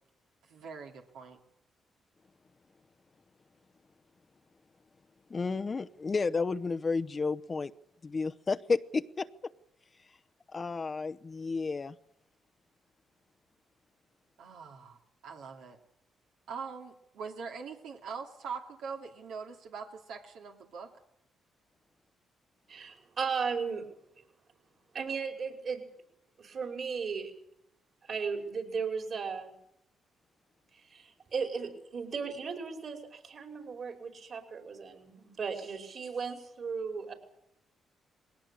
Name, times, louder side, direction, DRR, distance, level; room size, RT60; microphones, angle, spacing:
voice 1, 0.5-1.4 14.4-15.8 16.5-20.9, right 5 dB, 80° right, 2 dB, 2.7 m, -43 dB
voice 2, 5.3-7.7 8.0-9.5 10.5-11.9, left 4 dB, 35° left, 11 dB, 0.9 m, -32 dB
voice 3, 22.7-23.9 24.9-25.8 26.4-27.3 28.0-29.5 30.7-37.1, right 5 dB, 55° right, 5 dB, 5.3 m, -36 dB
21.0 x 17.5 x 8.6 m, 0.76 s
supercardioid pair, 65°, 0 cm